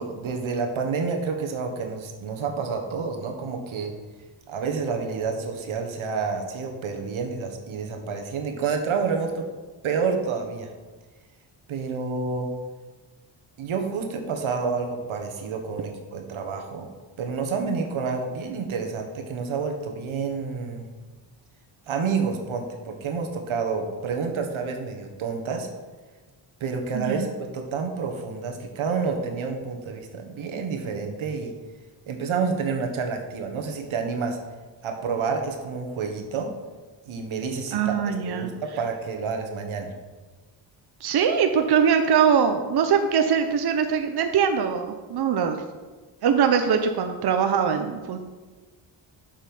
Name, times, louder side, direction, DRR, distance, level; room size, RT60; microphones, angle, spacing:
voice 1, 0.0-3.9 4.5-9.5 9.8-10.7 11.7-12.5 13.6-16.9 17.2-20.8 21.9-25.7 26.6-31.5 32.1-34.4 34.8-36.5 37.1-37.9 38.3-39.9, right 5 dB, 90° right, 4 dB, 1.3 m, -29 dB
voice 2, 26.9-27.3 37.7-38.5 41.0-45.6 46.2-48.2, right 7 dB, 55° right, 6 dB, 0.7 m, -22 dB
7.5 x 5.5 x 5.4 m, 1.3 s
wide cardioid pair, 120°, 47 cm